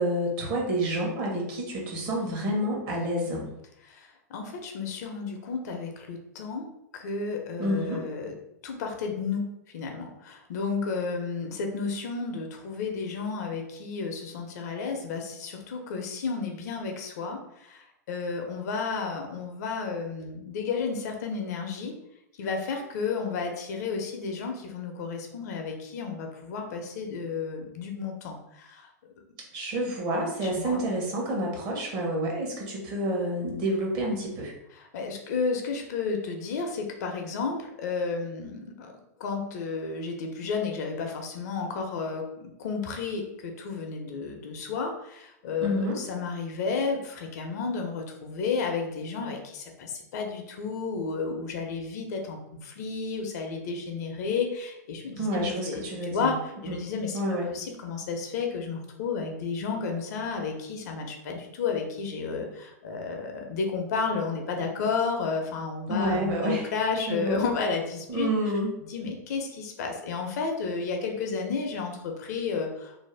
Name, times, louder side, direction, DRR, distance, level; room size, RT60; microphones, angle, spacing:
voice 1, 0.0-3.5 7.6-8.0 29.5-34.5 45.6-46.0 55.2-56.3 56.7-56.9 57.1-57.5 65.9-66.7 67.0-67.4 68.1-68.7, equal, 40° right, -1 dB, 1.0 m, -29 dB
voice 2, 3.8-6.7 6.9-8.4 8.6-9.5 9.7-21.9 22.4-28.9 30.4-30.8 34.8-38.9 39.2-55.8 56.1-57.2 57.5-68.3 68.9-73.0, left 5 dB, 65° left, 3 dB, 0.6 m, -32 dB
2.6 x 2.1 x 3.2 m, 0.81 s
hypercardioid pair, 120°, 10 cm